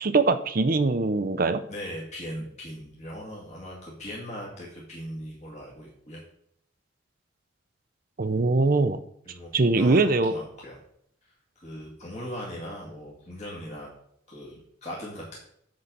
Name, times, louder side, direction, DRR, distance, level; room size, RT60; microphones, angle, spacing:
voice 1, 0.0-1.6 8.2-9.0 9.5-10.4, right 3 dB, 45° right, 10 dB, 0.6 m, -22 dB
voice 2, 1.7-6.2 9.3-10.8 11.6-13.9 14.3-15.4, equal, 35° left, -4 dB, 2.0 m, -39 dB
9.7 x 3.9 x 6.8 m, 0.71 s
head